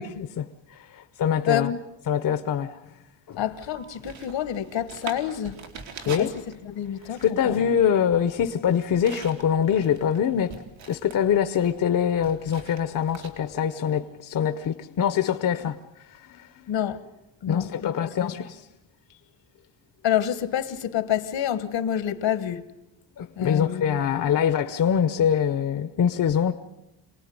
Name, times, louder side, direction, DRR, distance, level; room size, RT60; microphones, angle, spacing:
voice 1, 0.0-1.7 2.1-2.8 3.3-3.4 6.1-6.3 7.2-10.5 10.9-15.8 16.1-16.5 17.5-18.6 23.2-26.5, left 8 dB, 45° left, 0.9 m, -24 dB
voice 2, 1.5-1.8 3.4-5.6 6.2-6.3 6.6-7.6 16.7-17.0 17.4-18.4 20.0-22.6 23.4-23.8, left 10 dB, 75° left, 1.6 m, -28 dB
sound 1, 3.3-13.6, right 5 dB, 85° right, 3.8 m, -44 dB
27.5 x 19.0 x 9.6 m
cardioid pair, 165°, 45 cm